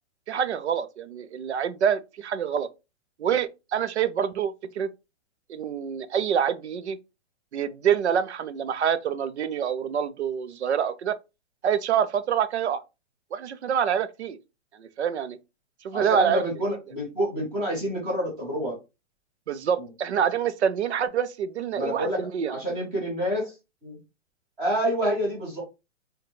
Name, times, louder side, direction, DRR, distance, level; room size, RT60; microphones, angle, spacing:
voice 1, 0.3-2.7 3.2-4.9 5.5-7.0 7.5-11.1 11.6-12.8 13.3-14.4 14.8-15.4 15.8-16.4 19.5-22.5, right 8 dB, 60° right, 0.5 m, -26 dB
voice 2, 15.9-18.8 19.8-19.9 21.7-22.2 22.5-23.5 23.8-24.0 24.6-25.6, equal, 15° right, 1.2 m, -28 dB
4.6 x 2.3 x 3.1 m
hypercardioid pair, 175°, 37 cm